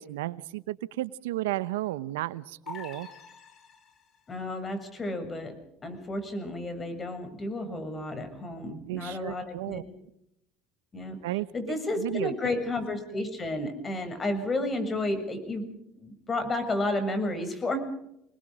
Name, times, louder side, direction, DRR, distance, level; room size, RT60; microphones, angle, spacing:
voice 1, 0.0-3.1 8.9-9.8 11.2-12.5, right 16 dB, 90° right, 16 dB, 1.0 m, -33 dB
sound 1, 2.7-4.3, left 6 dB, 45° left, 5.1 m, -45 dB
voice 2, 4.3-9.9 10.9-11.2 11.5-15.7 16.0-17.8, left 2 dB, 25° left, 9 dB, 7.1 m, -32 dB
28.0 x 21.0 x 5.1 m, 0.79 s
supercardioid pair, 95°, 0 cm